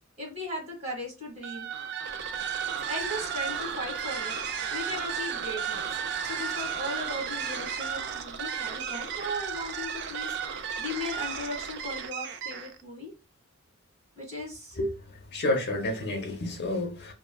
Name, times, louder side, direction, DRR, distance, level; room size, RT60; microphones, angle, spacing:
voice 1, 0.2-1.7 2.9-4.4 4.7-5.9 6.2-13.1 14.1-14.8, left 1 dB, 30° right, 1.4 m, -37 dB
sound 1, 1.4-12.8, right 7 dB, 55° right, 0.3 m, -34 dB
voice 2, 14.8-17.1, left 1 dB, 50° left, 0.7 m, -30 dB
3.0 x 2.2 x 2.2 m
head